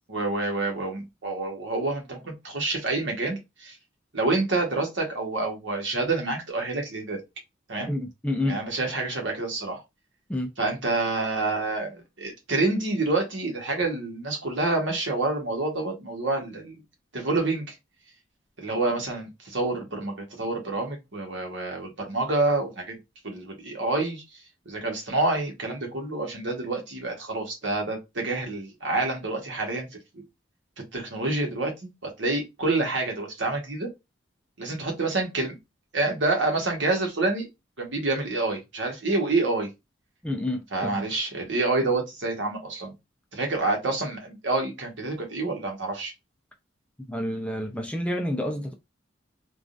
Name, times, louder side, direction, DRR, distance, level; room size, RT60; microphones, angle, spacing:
voice 1, 0.1-3.8 4.1-7.2 7.7-7.9 8.4-9.8 10.6-16.8 17.1-17.7 18.6-23.0 23.2-24.2 24.6-29.9 30.1-30.2 30.9-33.9 34.6-35.6 35.9-37.5 37.8-39.7 40.7-42.9 43.3-46.1, right 2 dB, 70° right, 1.2 m, -28 dB
voice 2, 7.9-8.6 10.3-10.5 40.2-41.1 47.1-48.7, left 1 dB, 5° left, 0.4 m, -29 dB
3.5 x 2.3 x 2.4 m
head